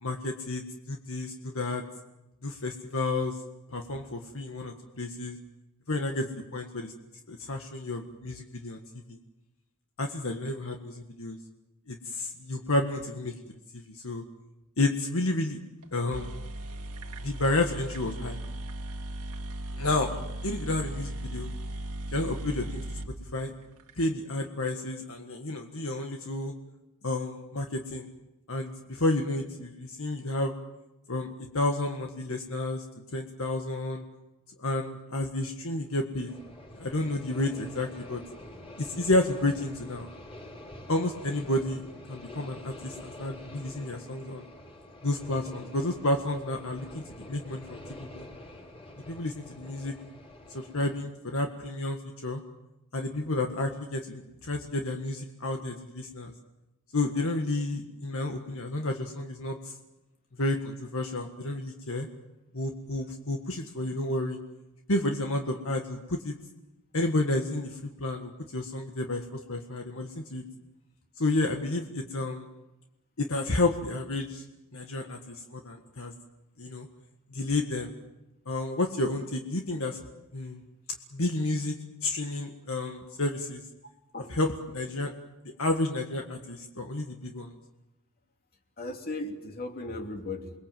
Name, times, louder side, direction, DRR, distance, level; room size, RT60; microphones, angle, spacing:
voice 1, 0.0-1.8 2.4-3.4 3.7-5.4 5.9-6.3 6.5-6.9 7.3-8.8 9.1-9.2 10.0-11.4 11.9-13.3 13.7-14.2 14.8-15.6 15.9-16.3 17.2-18.4 19.8-20.1 20.4-21.5 22.1-22.8 23.3-23.5 24.0-26.5 27.0-28.1 28.5-30.5 31.1-31.3 31.5-32.8 33.1-34.0 34.6-36.3 36.7-38.2 38.8-40.1 40.9-41.8 42.1-44.5 45.0-48.3 49.1-49.9 50.5-52.4 52.9-56.3 56.9-59.7 60.4-62.1 62.5-64.4 64.9-66.3 66.9-70.4 71.2-72.5 73.2-74.4 74.7-76.1 76.6-76.9 77.3-77.9 78.4-80.0 80.3-80.6 81.1-83.6 84.3-85.1 85.6-87.6, left 2 dB, 65° left, 3 dB, 1.7 m, -31 dB
sound 1, 15.8-15.9 16.1-23.9, right 1 dB, 85° right, 2.0 m, -37 dB
sound 2, 36.3-51.0, left 1 dB, 25° left, 5.0 m, -47 dB
voice 2, 88.8-90.5, left 2 dB, 45° left, 3 dB, 2.9 m, -37 dB
29.0 x 21.5 x 7.6 m, 0.97 s
head